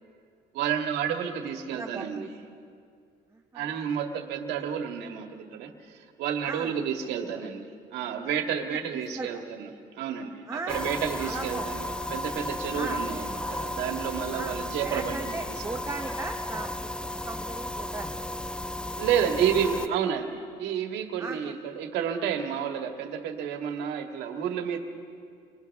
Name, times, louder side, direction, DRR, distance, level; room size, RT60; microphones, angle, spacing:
voice 1, 0.5-2.3 3.5-7.6 7.9-9.7 9.9-15.4 15.7-15.8 19.0-24.8, right 8 dB, 90° right, 4 dB, 2.0 m, -30 dB
voice 2, 1.7-2.3 3.3-3.8 6.4-6.7 7.2-7.4 8.7-9.4 10.5-11.7 12.7-13.0 14.3-16.7 17.0-18.1 19.2-19.3 19.7-19.9 21.2-21.5, right 3 dB, 15° right, 2 dB, 1.1 m, -38 dB
sound 1, 10.7-19.9, left 1 dB, 5° left, 0.6 m, -34 dB
28.5 x 25.5 x 3.6 m, 2.3 s
cardioid pair, 110°, 17 cm